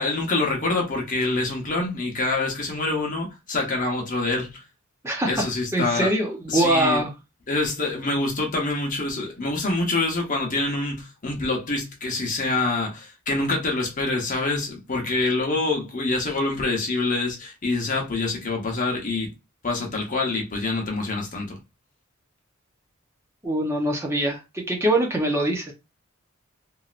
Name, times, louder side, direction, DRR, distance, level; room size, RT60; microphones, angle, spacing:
voice 1, 0.0-4.6 5.3-6.1 6.5-7.0 7.5-19.3 19.6-21.6, left 2 dB, 40° left, 0.8 m, -26 dB
voice 2, 5.0-5.4 5.7-7.1 23.4-25.7, right 1 dB, 15° right, 0.6 m, -23 dB
3.1 x 2.7 x 2.4 m
head